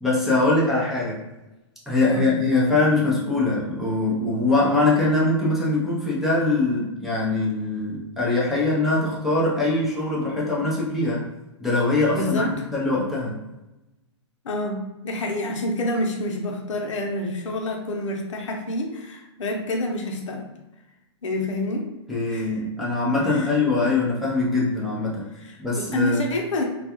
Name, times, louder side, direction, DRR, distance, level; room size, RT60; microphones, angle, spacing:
voice 1, 0.0-1.2 1.9-11.2 11.6-13.4 22.1-25.3 25.6-26.2, left 2 dB, ahead, -7 dB, 0.5 m, -22 dB
voice 2, 12.1-12.5 14.4-20.5 21.2-21.9 22.3-22.6 23.3-23.5 25.4-26.6, left 1 dB, 80° left, 2 dB, 0.7 m, -28 dB
2.3 x 2.2 x 2.8 m, 1.0 s
hypercardioid pair, 145°, 16 cm